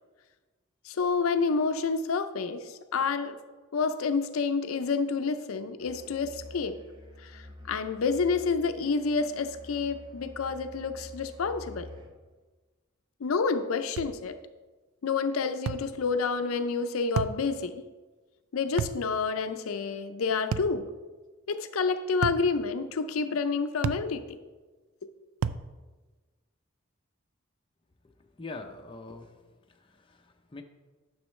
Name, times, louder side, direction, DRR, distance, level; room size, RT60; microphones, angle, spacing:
voice 1, 0.8-3.4 3.7-6.8 7.2-11.9 13.2-14.4 15.0-17.9 18.5-20.9 21.5-24.4, left 4 dB, 90° left, 9 dB, 0.5 m, -29 dB
Musical instrument, 5.8-12.2, left 1 dB, 20° right, 0.8 m, -48 dB
sound 1, 14.0-14.2 15.7-15.9 17.2-17.4 18.8-19.0 20.5-20.8 22.2-22.5 23.8-24.1 25.4-25.7, right 7 dB, 75° right, 0.3 m, -31 dB
voice 2, 28.0-29.4 29.7-30.6, left 3 dB, 25° left, 4 dB, 0.5 m, -44 dB
10.0 x 6.2 x 3.2 m, 1.3 s
head